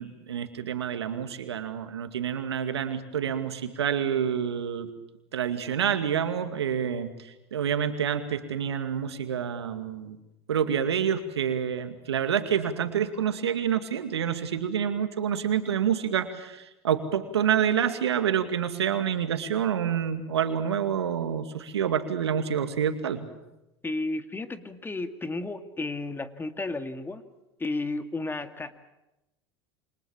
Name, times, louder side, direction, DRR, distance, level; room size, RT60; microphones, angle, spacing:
voice 1, 0.0-4.9 5.3-10.2 10.5-23.3, right 8 dB, 85° right, 8 dB, 2.3 m, -28 dB
voice 2, 23.8-27.2 27.6-28.7, left 2 dB, 15° left, 9 dB, 2.2 m, -33 dB
28.0 x 25.0 x 7.2 m, 0.95 s
hypercardioid pair, 85°, 13 cm